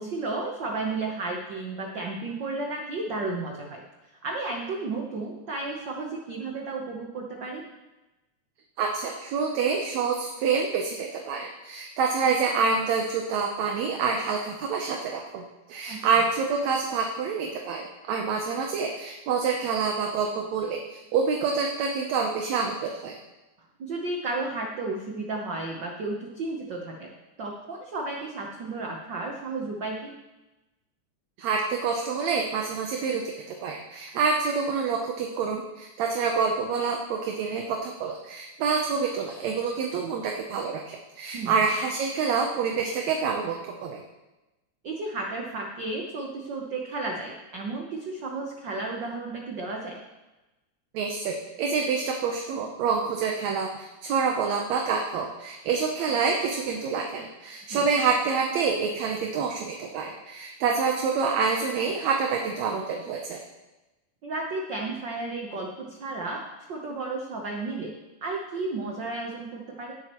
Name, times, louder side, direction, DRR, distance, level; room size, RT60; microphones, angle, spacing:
voice 1, 0.0-3.8 4.1-7.7 15.9-16.0 23.8-27.1 27.4-30.1 41.3-41.7 44.8-50.0 57.7-57.8 64.2-66.4 66.7-67.9 68.2-69.9, right 3 dB, 85° right, 0 dB, 0.9 m, -33 dB
voice 2, 8.8-23.2 31.4-44.0 50.9-63.4, right 5 dB, 70° right, 2 dB, 2.0 m, -27 dB
17.5 x 7.4 x 3.0 m, 1.1 s
omnidirectional pair, 3.5 m